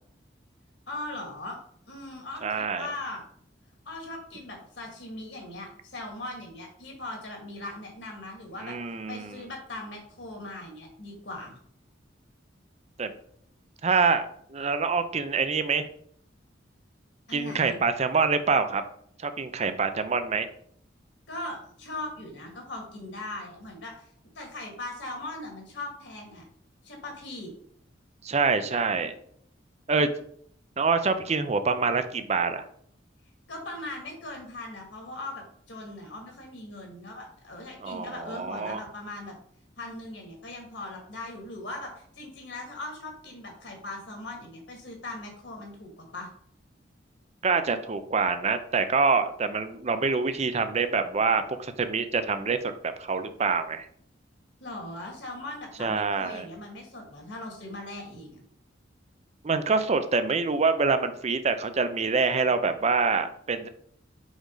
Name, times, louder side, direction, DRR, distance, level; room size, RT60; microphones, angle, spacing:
voice 1, 0.9-1.6 1.9-3.2 3.9-8.8 9.1-11.6 17.3-17.8 21.3-24.1 24.4-26.4 26.8-27.5 33.5-39.3 39.8-46.3 54.6-58.4, left 2 dB, 70° left, 1 dB, 2.0 m, -39 dB
voice 2, 2.4-2.9 8.6-9.4 13.0-13.1 13.8-14.2 14.5-15.9 17.3-18.8 19.2-20.5 28.2-29.1 29.9-30.1 30.8-32.6 37.8-38.8 47.4-53.9 55.8-56.5 59.4-63.7, right 4 dB, 35° right, 10 dB, 0.6 m, -26 dB
5.2 x 5.0 x 3.9 m, 0.63 s
head